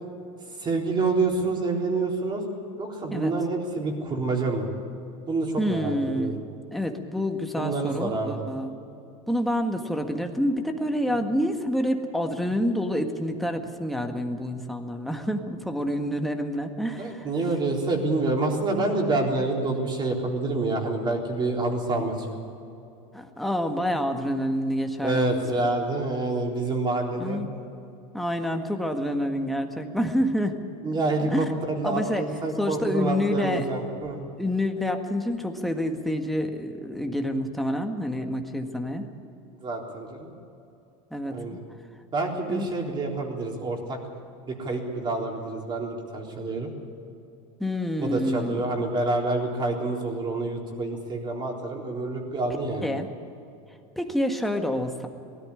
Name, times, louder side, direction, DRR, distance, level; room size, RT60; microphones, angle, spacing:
voice 1, 0.6-2.4 2.8-4.7 5.3-6.3 7.6-8.5 17.0-22.4 25.0-27.4 30.8-34.2 39.6-40.3 41.3-41.6 42.1-44.0 44.5-46.7 48.0-52.9, right 3 dB, 25° right, 1 dB, 3.8 m, -27 dB
voice 2, 5.6-6.4 6.7-8.7 9.3-17.3 23.1-25.4 27.2-27.5 28.1-30.6 31.2-31.5 31.8-32.2 32.6-33.7 34.4-39.1 41.1-41.6 42.5-42.7 47.6-48.7 52.8-53.1 53.9-55.1, equal, ahead, 3 dB, 1.7 m, -28 dB
18.5 x 14.0 x 10.0 m, 2.7 s
supercardioid pair, 120°, 17 cm